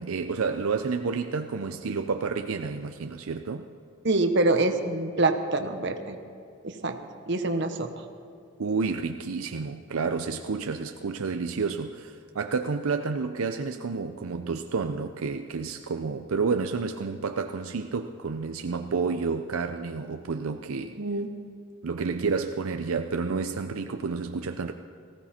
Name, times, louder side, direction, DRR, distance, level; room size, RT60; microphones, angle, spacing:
voice 1, 0.0-3.7 8.6-21.0 21.8-24.7, right 4 dB, 80° right, 0.6 m, -30 dB
voice 2, 4.0-6.2 6.6-7.0 7.3-7.9 21.0-21.4, right 2 dB, 55° right, 1.1 m, -25 dB
18.5 x 16.0 x 4.4 m
head